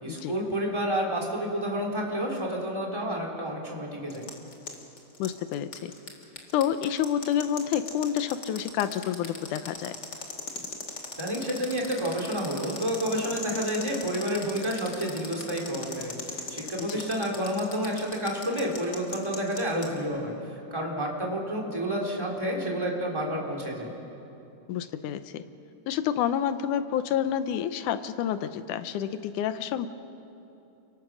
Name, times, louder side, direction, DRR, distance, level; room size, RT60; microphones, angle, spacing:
voice 1, 0.0-4.3 11.2-20.3 20.7-23.9, equal, 10° right, -2 dB, 3.2 m, -30 dB
sound 1, 4.1-19.9, left 4 dB, 35° left, 2.3 m, -38 dB
voice 2, 5.2-5.9 6.5-10.0 16.8-17.0 24.7-25.4 25.9-29.9, left 9 dB, 75° left, 11 dB, 2.2 m, -29 dB
30.0 x 22.0 x 6.3 m, 2.9 s
omnidirectional pair, 3.7 m